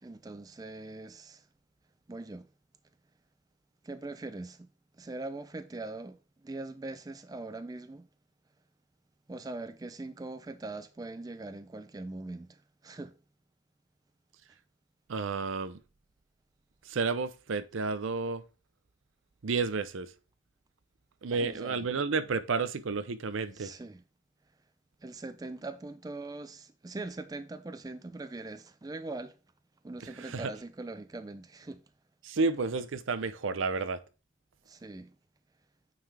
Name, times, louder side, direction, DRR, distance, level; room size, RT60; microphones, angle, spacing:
voice 1, 0.0-1.4 2.1-2.5 3.8-4.7 5.0-6.2 6.4-8.1 9.3-13.1 21.3-21.9 23.5-24.0 25.0-29.4 29.8-31.8 34.7-35.1, right 2 dB, 20° right, 0.3 m, -41 dB
voice 2, 15.1-15.8 16.9-18.4 19.4-20.1 21.2-23.7 30.0-30.5 32.2-34.0, right 4 dB, 85° right, 0.6 m, -31 dB
9.0 x 3.6 x 3.3 m
head